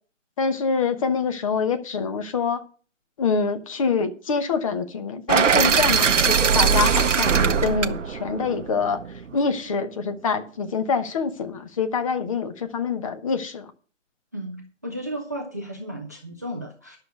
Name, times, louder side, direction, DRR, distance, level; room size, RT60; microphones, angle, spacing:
voice 1, 0.4-2.6 3.2-9.0 9.3-13.7, left 5 dB, 25° left, 1.0 m, -25 dB
sound 1, 5.3-9.3, right 6 dB, 70° right, 0.8 m, -21 dB
voice 2, 14.3-17.0, right 1 dB, 15° right, 0.5 m, -34 dB
11.0 x 6.5 x 6.6 m
figure-of-eight pair, 150°, 38 cm